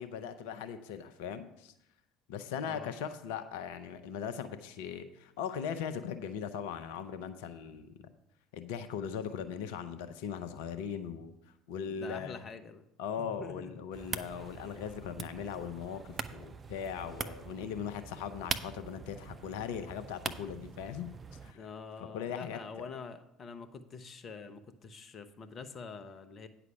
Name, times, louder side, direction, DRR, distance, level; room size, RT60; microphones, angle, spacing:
voice 1, 0.0-1.7 2.3-8.0 8.5-11.3 11.7-12.5 13.0-21.1 21.4-21.6 22.1-22.9, left 7 dB, 60° left, 11 dB, 0.6 m, -39 dB
voice 2, 11.9-12.8 13.2-13.7 21.5-26.5, left 5 dB, 35° left, 10 dB, 0.8 m, -45 dB
sound 1, 13.9-21.5, right 5 dB, 30° right, 0.5 m, -43 dB
9.4 x 6.0 x 5.7 m, 0.84 s
figure-of-eight pair, 60°, 0 cm